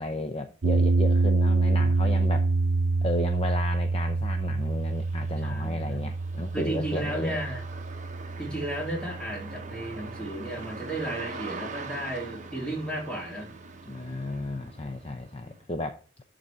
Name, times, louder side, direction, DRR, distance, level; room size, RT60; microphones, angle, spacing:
voice 1, 0.0-2.5 3.0-7.4 13.9-16.0, left 2 dB, 30° left, 0.6 m, -33 dB
sound 1, 0.6-10.9, right 3 dB, 60° right, 0.6 m, -27 dB
sound 2, 2.2-2.3 2.8-15.6, right 3 dB, 40° right, 1.1 m, -44 dB
voice 2, 5.4-6.0 6.5-7.6 8.4-13.5, right 1 dB, 5° left, 3.3 m, -33 dB
11.5 x 4.1 x 4.8 m
head